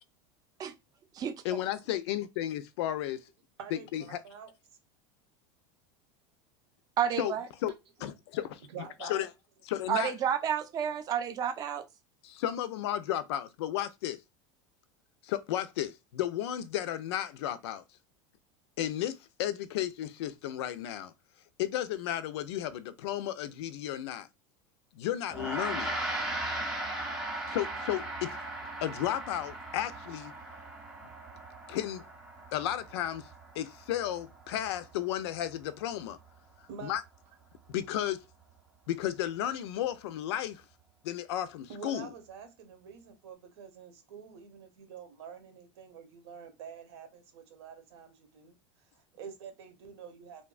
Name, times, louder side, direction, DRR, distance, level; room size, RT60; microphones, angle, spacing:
voice 1, 1.4-3.2 3.7-4.2 7.2-7.3 7.6-7.7 8.0-8.6 9.0-9.3 9.7-10.1 12.2-14.2 15.2-17.8 18.8-21.1 21.6-24.3 24.9-25.9 27.5-28.4 28.8-30.3 31.0-31.1 31.7-32.0 32.5-33.3 33.5-36.2 36.8-37.0 37.7-38.2 38.9-40.6 41.0-42.1, left 12 dB, 85° left, 0.4 m, -33 dB
voice 2, 3.6-4.5 8.7-9.3 36.7-36.9 41.7-48.5 48.9-50.5, right 7 dB, 85° right, 0.9 m, -47 dB
voice 3, 7.0-7.5 9.9-11.8, right 8 dB, 30° right, 0.4 m, -30 dB
Gong, 25.3-34.8, right 1 dB, 5° right, 0.8 m, -38 dB
2.7 x 2.2 x 2.3 m
supercardioid pair, 135°, 14 cm